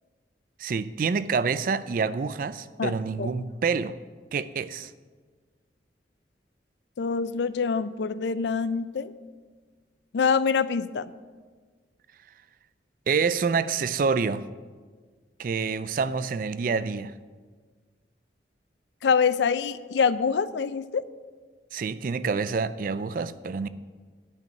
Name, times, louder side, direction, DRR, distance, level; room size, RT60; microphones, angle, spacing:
voice 1, 0.6-3.9 4.3-4.9 13.1-14.4 15.4-17.1 21.7-23.7, right 5 dB, 50° right, 15 dB, 0.3 m, -27 dB
voice 2, 2.8-3.3 7.0-9.1 10.1-11.1 19.0-21.0, left 5 dB, 75° left, 15 dB, 0.4 m, -25 dB
10.5 x 5.3 x 7.6 m, 1.5 s
head